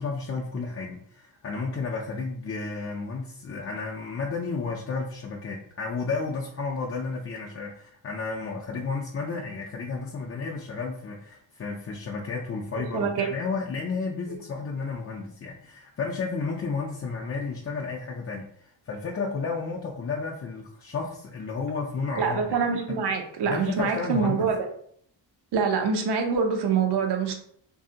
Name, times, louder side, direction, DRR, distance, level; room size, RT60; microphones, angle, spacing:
voice 1, 0.0-22.4 22.9-23.0 23.4-24.5, left 4 dB, 35° left, -2 dB, 0.4 m, -32 dB
voice 2, 12.9-13.3 22.2-24.7 25.5-27.3, right 5 dB, 60° right, 4 dB, 0.5 m, -25 dB
2.6 x 2.6 x 2.4 m, 0.64 s
cardioid pair, 85°, 45 cm